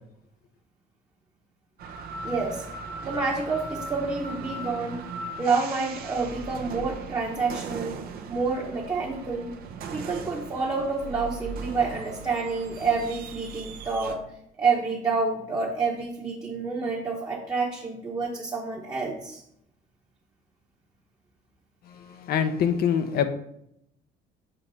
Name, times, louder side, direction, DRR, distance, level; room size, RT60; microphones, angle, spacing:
sound 1, 1.8-14.1, right 4 dB, 65° right, 0.8 m, -38 dB
voice 1, 2.2-2.7 3.0-5.0 5.4-8.0 8.3-9.5 9.9-14.2 14.6-19.4, right 4 dB, 20° right, -3 dB, 1.0 m, -28 dB
voice 2, 21.9-23.3, left 8 dB, 65° left, 9 dB, 0.6 m, -25 dB
6.6 x 2.9 x 5.4 m, 0.75 s
cardioid pair, 110°, 17 cm